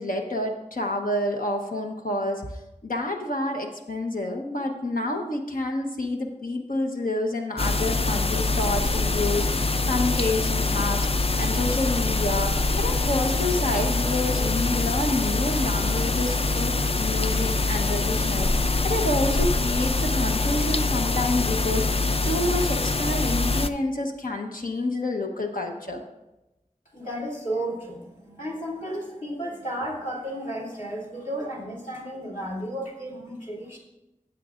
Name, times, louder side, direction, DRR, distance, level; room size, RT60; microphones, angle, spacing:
voice 1, 0.0-2.4 2.8-11.1 11.4-26.0, left 2 dB, 85° left, 2 dB, 1.0 m, -28 dB
sound 1, 7.6-23.7, left 3 dB, 45° left, 0.4 m, -24 dB
voice 2, 26.9-33.8, right 1 dB, 65° left, -4 dB, 3.1 m, -33 dB
16.0 x 7.4 x 2.5 m, 0.95 s
wide cardioid pair, 40°, 14 cm